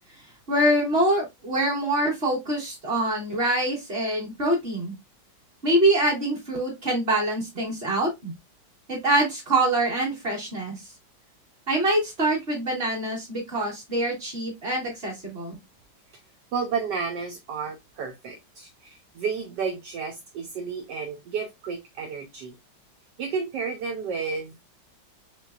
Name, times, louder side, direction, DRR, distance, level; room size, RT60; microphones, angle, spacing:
voice 1, 0.5-4.9 5.6-8.3 8.9-10.8 11.7-15.6, right 1 dB, 30° right, -3 dB, 2.2 m, -25 dB
voice 2, 16.5-22.6 23.2-24.6, right 5 dB, 70° right, 5 dB, 1.2 m, -31 dB
4.0 x 3.8 x 2.3 m, 0.19 s
omnidirectional pair, 2.1 m